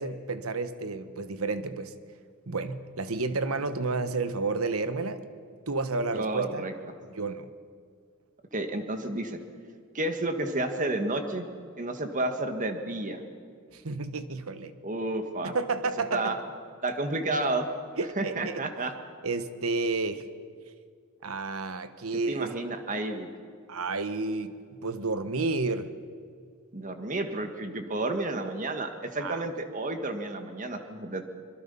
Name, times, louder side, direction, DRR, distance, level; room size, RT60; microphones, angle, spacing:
voice 1, 0.0-1.9 2.5-5.2 5.7-6.7 7.1-7.5 13.7-14.7 15.4-16.3 18.0-18.6 19.2-20.2 21.2-22.5 23.7-24.6 24.8-25.9 29.2-29.4, right 3 dB, 85° right, 11 dB, 1.2 m, -31 dB
voice 2, 6.1-6.7 8.5-9.4 9.9-11.5 11.8-13.2 14.8-15.5 16.1-16.4 16.8-17.7 18.2-18.9 22.3-23.3 26.7-31.2, right 2 dB, 35° right, 6 dB, 1.7 m, -31 dB
24.5 x 22.0 x 5.5 m, 2.1 s
head